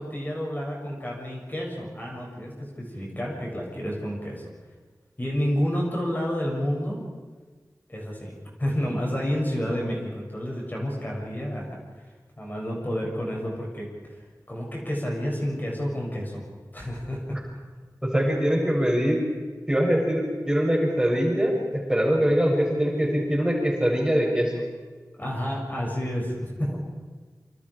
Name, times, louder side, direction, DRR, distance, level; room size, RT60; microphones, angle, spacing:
voice 1, 0.0-4.5 5.2-7.1 7.9-11.7 12.4-14.2 14.5-16.5 16.7-17.4 25.2-26.7, equal, 30° left, -3 dB, 7.7 m, -30 dB
voice 2, 18.0-19.2 19.7-24.5, equal, 10° right, -2 dB, 7.8 m, -23 dB
28.5 x 26.5 x 5.1 m, 1.4 s
wide cardioid pair, 60°, 7 cm